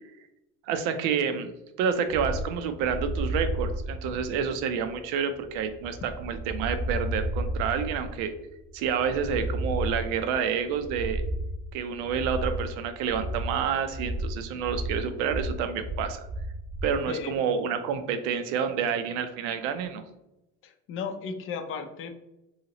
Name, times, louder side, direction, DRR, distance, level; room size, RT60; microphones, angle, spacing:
voice 1, 0.7-1.5 1.8-8.3 8.7-11.2 11.7-16.2 16.8-20.0, right 7 dB, 85° right, 9 dB, 0.5 m, -29 dB
sound 1, 2.1-17.0, right 1 dB, 40° right, 0.6 m, -33 dB
voice 2, 20.6-22.1, left 5 dB, 45° left, 7 dB, 0.4 m, -35 dB
2.8 x 2.8 x 2.8 m, 0.93 s
cardioid pair, 130°, 31 cm